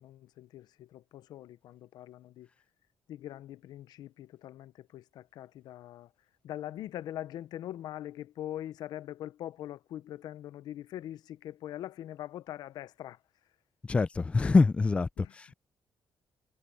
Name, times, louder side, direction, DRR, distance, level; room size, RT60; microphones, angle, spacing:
voice 1, 0.0-2.5 3.1-6.1 6.4-13.2 14.4-14.5 15.2-15.3, left 12 dB, 90° left, 0.6 m, -42 dB
voice 2, 13.8-15.5, left 3 dB, 15° left, 0.3 m, -25 dB
cardioid pair, 155°, 7 cm